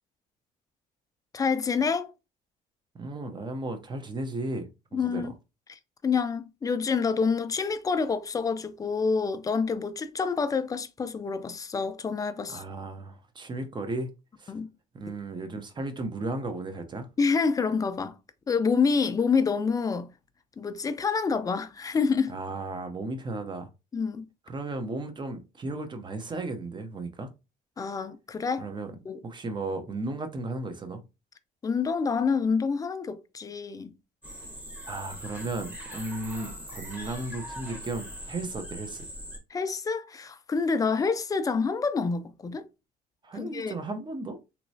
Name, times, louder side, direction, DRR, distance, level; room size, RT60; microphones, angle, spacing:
voice 1, 1.3-2.1 4.9-5.3 5.7-12.6 14.5-14.7 17.2-18.1 18.5-20.1 20.6-22.3 23.9-24.2 27.8-28.7 29.1-29.2 31.6-33.9 39.5-42.7 43.4-43.7, left 5 dB, 20° left, 0.4 m, -27 dB
voice 2, 2.9-5.3 12.5-14.1 14.4-14.5 14.9-17.1 22.3-23.7 24.5-27.3 28.6-28.9 29.2-31.0 34.9-39.1 43.2-44.4, right 2 dB, 25° right, 0.7 m, -35 dB
sound 1, 34.2-39.4, equal, 10° right, 1.1 m, -41 dB
3.1 x 2.9 x 2.7 m
cardioid pair, 110°, 17 cm